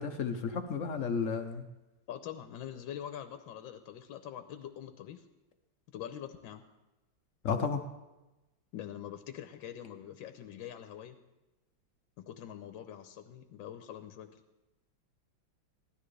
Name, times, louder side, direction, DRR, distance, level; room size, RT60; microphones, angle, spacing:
voice 1, 0.0-1.7 7.4-7.8, left 5 dB, 60° left, 7 dB, 0.8 m, -32 dB
voice 2, 2.1-5.2 5.9-6.6 8.7-11.2 12.2-14.3, left 10 dB, 75° left, 8 dB, 1.4 m, -44 dB
17.0 x 12.5 x 3.3 m, 1.0 s
omnidirectional pair, 2.2 m